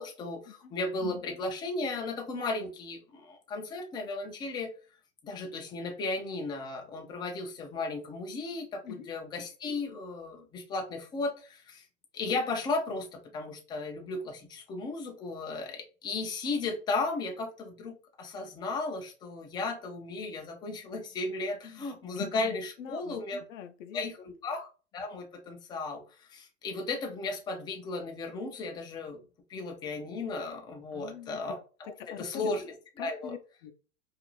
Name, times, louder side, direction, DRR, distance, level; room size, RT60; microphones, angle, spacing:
voice 1, 0.0-4.7 5.2-11.8 12.1-23.4 23.9-29.2 29.5-33.3, left 3 dB, 10° left, 0.3 m, -35 dB
voice 2, 22.8-23.2 23.5-24.3 30.9-31.4 31.8-32.5 33.0-33.7, left 8 dB, 65° left, 0.6 m, -44 dB
2.5 x 2.4 x 2.9 m
hypercardioid pair, 100°, 42 cm